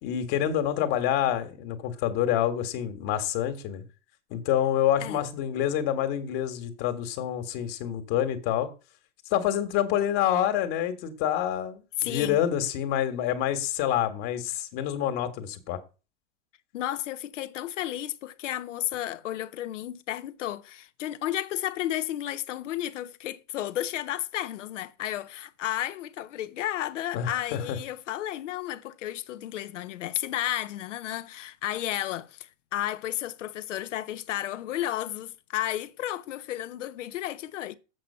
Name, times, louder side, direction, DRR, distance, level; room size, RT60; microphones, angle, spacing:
voice 1, 0.0-3.8 4.3-8.7 9.3-15.8 27.1-27.8, left 10 dB, 50° left, 1.8 m, -27 dB
voice 2, 12.0-12.4 16.7-37.8, left 13 dB, 80° left, 0.9 m, -32 dB
7.6 x 6.3 x 5.6 m
supercardioid pair, 125°, 36 cm